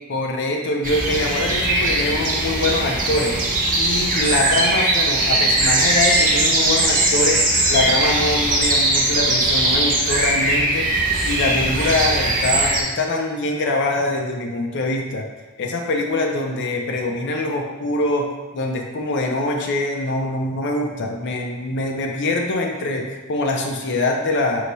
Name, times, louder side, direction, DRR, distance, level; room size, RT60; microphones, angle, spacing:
voice 1, 0.1-7.4 7.7-15.3 15.6-24.7, left 2 dB, 55° left, 1 dB, 0.6 m, -24 dB
sound 1, 0.8-12.8, right 2 dB, 40° right, 0.8 m, -20 dB
4.6 x 2.2 x 4.0 m, 1.3 s
head